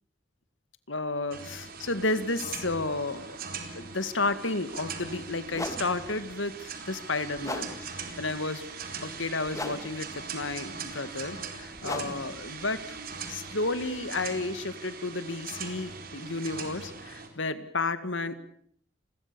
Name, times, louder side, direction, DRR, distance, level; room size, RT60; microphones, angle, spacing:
voice 1, 0.9-3.4 3.8-8.7 9.0-13.0 13.3-18.3, left 3 dB, 80° left, 12 dB, 2.1 m, -32 dB
sound 1, 1.3-17.3, right 5 dB, 50° right, 4.4 m, -41 dB
sound 2, 4.7-4.8 5.5-14.3, left 1 dB, 15° left, 2.3 m, -42 dB
30.0 x 21.5 x 7.1 m, 0.63 s
head